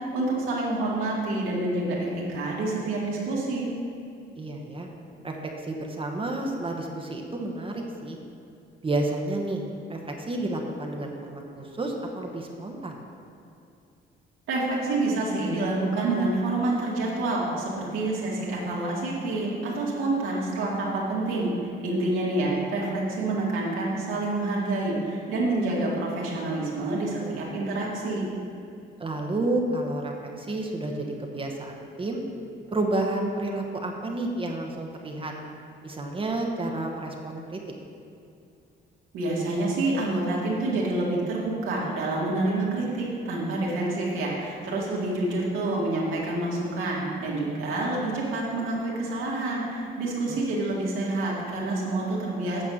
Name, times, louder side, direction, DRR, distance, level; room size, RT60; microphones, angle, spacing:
voice 1, 0.1-3.7 14.5-28.3 39.1-52.6, right 2 dB, 90° right, -4 dB, 2.2 m, -27 dB
voice 2, 4.4-4.9 5.2-8.2 8.8-9.6 9.9-12.9 22.4-22.6 29.0-32.2 32.7-35.3 35.8-37.6 50.3-50.4, right 2 dB, 25° right, 1 dB, 1.1 m, -30 dB
8.7 x 5.3 x 6.5 m, 2.6 s
cardioid pair, 90°, 20 cm